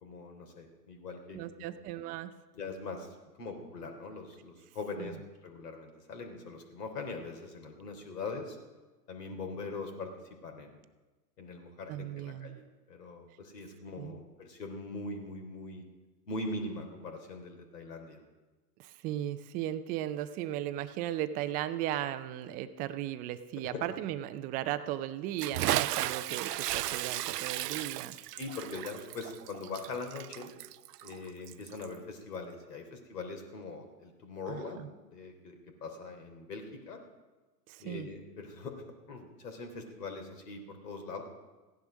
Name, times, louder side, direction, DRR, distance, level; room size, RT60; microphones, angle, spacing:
voice 1, 0.0-1.8 2.5-5.2 5.4-8.6 9.1-10.1 10.4-10.8 11.4-15.8 16.3-18.2 23.6-23.8 28.4-30.5 31.0-37.0 37.8-38.7 39.1-41.2, left 3 dB, 75° left, 4 dB, 3.5 m, -42 dB
voice 2, 1.3-2.3 5.0-5.1 11.9-12.6 14.0-14.2 18.8-28.2 34.5-34.9 37.7-38.1, right 12 dB, 20° right, 12 dB, 0.4 m, -36 dB
Bathtub (filling or washing) / Splash splatter, 25.4-32.0, right 15 dB, 75° right, 0.5 m, -35 dB
15.5 x 10.5 x 6.2 m, 1.2 s
hypercardioid pair, 110°, 48 cm